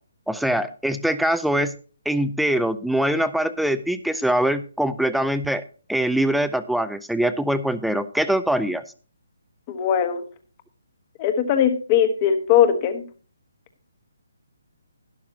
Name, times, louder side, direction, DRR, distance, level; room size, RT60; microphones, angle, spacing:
voice 1, 0.3-1.7 2.1-5.6 5.9-8.8, right 1 dB, ahead, 12 dB, 0.5 m, -23 dB
voice 2, 9.7-10.2 11.2-13.0, left 9 dB, 30° left, 9 dB, 1.4 m, -20 dB
12.0 x 12.0 x 2.8 m, 0.38 s
figure-of-eight pair, 140°, 0 cm